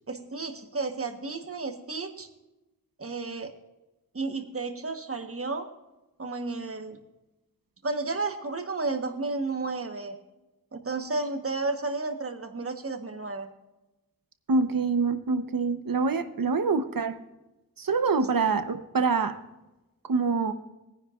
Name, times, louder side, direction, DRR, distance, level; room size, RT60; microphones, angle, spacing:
voice 1, 0.1-2.3 3.0-3.5 4.1-5.7 6.2-7.0 7.8-10.2 10.7-13.5, right 3 dB, 40° right, 6 dB, 1.3 m, -32 dB
voice 2, 14.5-17.2 17.8-19.4 20.1-20.5, right 4 dB, 65° right, 9 dB, 1.0 m, -25 dB
20.5 x 10.0 x 2.5 m, 1.0 s
wide cardioid pair, 85°, 36 cm